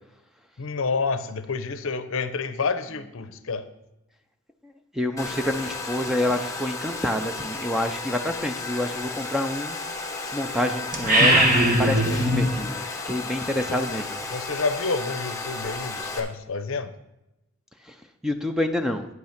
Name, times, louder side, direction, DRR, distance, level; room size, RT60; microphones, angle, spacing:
voice 1, 0.6-3.6 13.7-13.8 14.3-16.9, left 4 dB, 65° left, 11 dB, 0.7 m, -28 dB
voice 2, 4.9-9.8 10.3-14.2 18.2-19.1, left 1 dB, ahead, 6 dB, 0.5 m, -27 dB
Domestic sounds home sounds, 5.2-16.2, left 3 dB, 15° left, 1.1 m, -33 dB
sound 1, 10.9-12.5, right 1 dB, 40° right, 1.3 m, -19 dB
9.5 x 5.9 x 5.8 m, 0.91 s
head